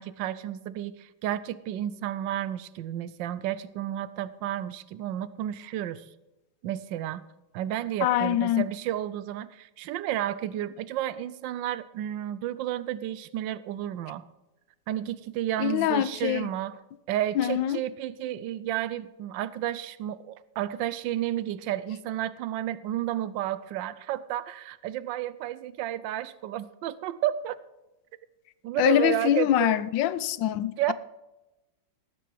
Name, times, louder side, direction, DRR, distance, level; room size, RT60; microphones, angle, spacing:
voice 1, 0.0-6.1 6.6-7.2 7.5-14.2 14.9-16.8 17.1-27.6 28.6-29.8 30.8-30.9, right 12 dB, 85° right, 1.3 m, -31 dB
voice 2, 8.0-8.6 15.6-16.5 17.3-17.8 28.8-30.9, left 12 dB, 90° left, 1.4 m, -24 dB
18.5 x 7.9 x 4.7 m
omnidirectional pair, 2.0 m